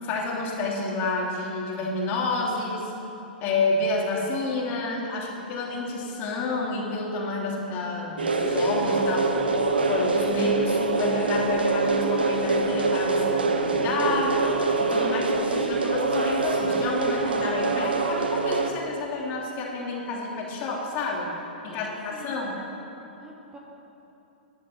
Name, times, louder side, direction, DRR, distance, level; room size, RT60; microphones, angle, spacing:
voice 1, 0.0-2.9 3.4-9.3 9.9-14.4 14.8-21.3 21.6-22.6, left 3 dB, 35° left, -1 dB, 3.0 m, -29 dB
sound 1, 8.2-18.7, right 3 dB, 80° right, 1.3 m, -24 dB
voice 2, 15.0-15.8 21.6-22.5 23.2-23.6, right 1 dB, 15° right, -2 dB, 2.2 m, -44 dB
23.0 x 11.0 x 4.5 m, 2.9 s
figure-of-eight pair, 105°, 5 cm